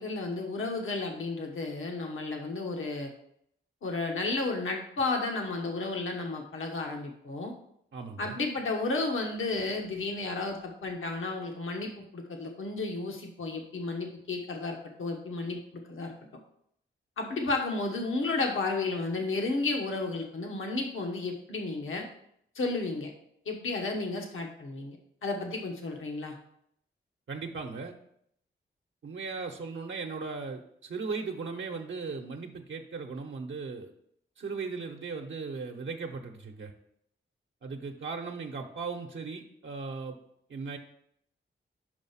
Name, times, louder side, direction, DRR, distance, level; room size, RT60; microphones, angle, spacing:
voice 1, 0.0-3.1 3.8-7.5 8.2-15.6 15.9-16.1 17.2-22.0 22.5-23.1 23.4-25.0 25.2-26.3, left 3 dB, 80° left, 2 dB, 1.2 m, -32 dB
voice 2, 7.9-8.3 27.3-27.9 29.0-33.9 34.4-36.7 37.6-40.2 40.5-40.8, right 4 dB, 70° right, 2 dB, 0.8 m, -37 dB
5.7 x 5.1 x 5.5 m, 0.70 s
wide cardioid pair, 90°, 20 cm